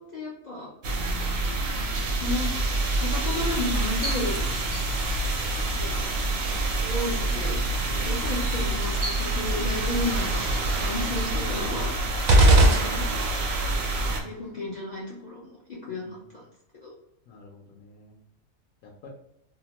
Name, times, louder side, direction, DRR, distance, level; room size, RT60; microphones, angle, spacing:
voice 1, 0.1-0.7 2.1-2.5 3.0-4.5 5.7-6.1 6.8-7.6 7.9-12.1 12.6-13.0 14.2-16.4 16.8-16.9, left 2 dB, 60° left, -5 dB, 0.4 m, -33 dB
sound 1, 0.8-14.2, right 2 dB, 60° right, 0.7 m, -27 dB
sound 2, 3.1-12.2, equal, 20° right, 0.4 m, -37 dB
sound 3, 12.3-13.6, right 1 dB, 80° right, 1.0 m, -18 dB
voice 2, 17.3-18.1 19.0-19.1, left 4 dB, 80° left, -2 dB, 1.0 m, -47 dB
2.8 x 2.1 x 2.8 m, 0.80 s
omnidirectional pair, 1.5 m